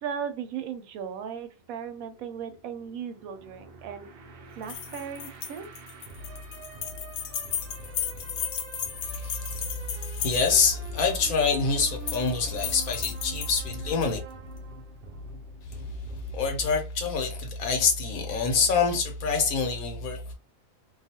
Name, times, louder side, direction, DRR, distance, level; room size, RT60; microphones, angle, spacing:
voice 1, 0.0-4.1 4.6-5.6, right 7 dB, 85° right, 1.0 m, -36 dB
sound 1, 1.6-16.8, equal, 65° right, 0.5 m, -44 dB
sound 2, 4.6-10.7 11.8-12.3 12.6-14.1, left 8 dB, 70° left, 0.8 m, -35 dB
voice 2, 9.0-9.6 9.9-14.2 16.3-20.3, left 5 dB, 85° left, 1.2 m, -26 dB
2.5 x 2.3 x 2.8 m
omnidirectional pair, 1.4 m